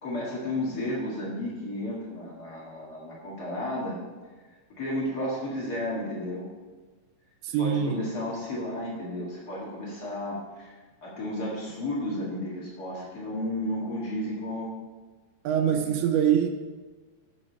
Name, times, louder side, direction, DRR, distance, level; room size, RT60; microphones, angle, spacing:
voice 1, 0.0-4.0 4.8-6.5 7.6-10.7 11.0-14.7 15.6-15.7, left 1 dB, 80° left, -5 dB, 0.9 m, -33 dB
voice 2, 7.4-8.0 15.4-16.5, right 9 dB, 80° right, 6 dB, 2.9 m, -24 dB
14.5 x 6.6 x 4.1 m, 1.3 s
omnidirectional pair, 5.2 m